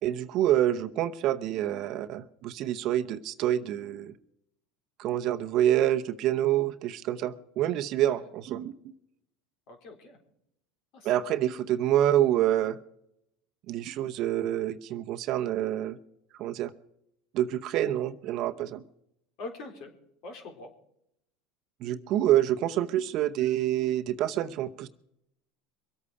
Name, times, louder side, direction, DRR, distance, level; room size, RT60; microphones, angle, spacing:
voice 1, 0.0-4.1 5.0-8.7 11.0-12.8 13.7-16.0 16.4-16.7 17.3-18.8 21.8-24.9, right 12 dB, 55° right, 10 dB, 0.9 m, -27 dB
voice 2, 9.7-10.2 10.9-11.1 19.4-19.9 20.2-20.7, left 3 dB, 60° left, 3 dB, 4.1 m, -43 dB
24.5 x 8.5 x 4.9 m, 0.78 s
supercardioid pair, 105°, 0 cm